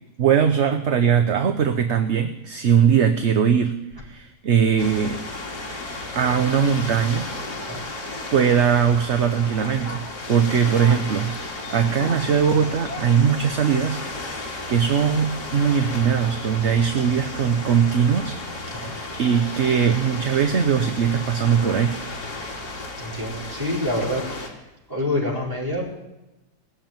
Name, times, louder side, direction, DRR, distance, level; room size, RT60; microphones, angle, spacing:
voice 1, 0.2-3.8 4.0-5.2 6.1-7.3 8.3-10.0 10.3-18.4 18.7-22.0, right 7 dB, 50° right, 7 dB, 1.0 m, -20 dB
sound 1, 4.8-24.5, left 2 dB, 80° left, 2.9 m, -34 dB
voice 2, 23.0-24.6 24.9-26.0, left 1 dB, 10° right, -5 dB, 4.8 m, -27 dB
19.5 x 7.5 x 8.9 m, 0.98 s
omnidirectional pair, 1.7 m